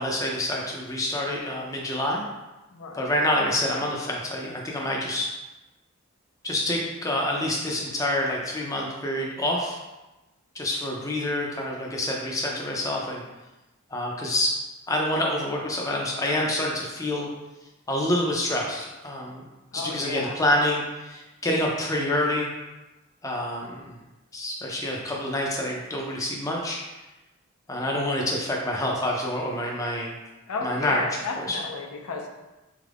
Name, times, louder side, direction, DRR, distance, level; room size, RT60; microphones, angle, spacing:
voice 1, 0.0-2.2 3.0-5.3 6.4-9.8 10.6-13.2 13.9-14.5 14.9-17.3 17.9-19.4 19.7-22.5 23.2-23.7 24.3-26.8 27.7-30.1 30.6-31.0 31.5-31.6, left 1 dB, 15° left, -2 dB, 0.4 m, -27 dB
voice 2, 2.7-3.1 19.7-20.4 30.5-32.3, left 4 dB, 85° left, 2 dB, 0.6 m, -33 dB
4.2 x 2.4 x 3.3 m, 1.1 s
head